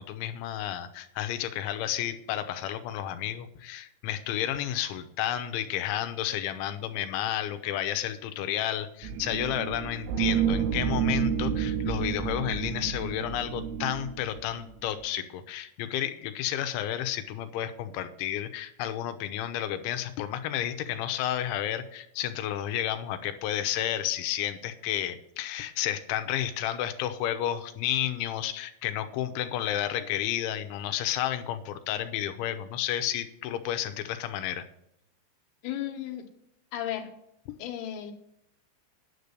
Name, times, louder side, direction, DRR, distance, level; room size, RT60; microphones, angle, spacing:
voice 1, 0.0-34.6 37.5-37.6, left 11 dB, 90° left, 9 dB, 3.1 m, -31 dB
sound 1, 9.0-15.0, right 8 dB, 80° right, 2.8 m, -30 dB
voice 2, 35.6-36.3 36.7-37.1 37.6-38.1, left 11 dB, 70° left, 5 dB, 2.9 m, -34 dB
10.5 x 6.8 x 8.1 m, 0.78 s
omnidirectional pair, 5.3 m